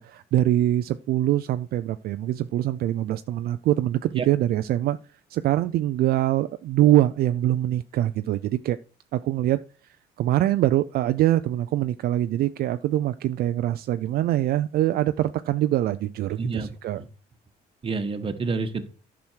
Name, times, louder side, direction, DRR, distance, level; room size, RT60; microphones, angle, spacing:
voice 1, 0.0-5.0 5.3-8.8 9.1-9.6 10.2-17.0, right 13 dB, 65° right, 0.5 m, -23 dB
voice 2, 16.4-16.7 17.0-17.1 17.8-18.9, right 4 dB, 30° right, 1.3 m, -28 dB
10.5 x 6.2 x 4.6 m
cardioid pair, 110°, 17 cm